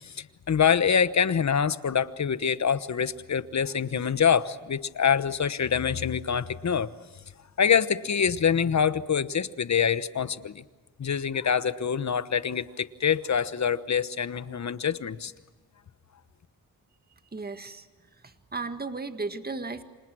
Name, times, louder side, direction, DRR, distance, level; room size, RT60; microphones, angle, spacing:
voice 1, 0.0-6.9 7.6-10.6 11.0-15.3, left 7 dB, 50° left, 14 dB, 1.2 m, -25 dB
voice 2, 17.3-17.9 18.2-19.8, right 3 dB, 25° right, 9 dB, 1.8 m, -35 dB
29.0 x 26.0 x 6.3 m, 1.3 s
cardioid pair, 75°, 35 cm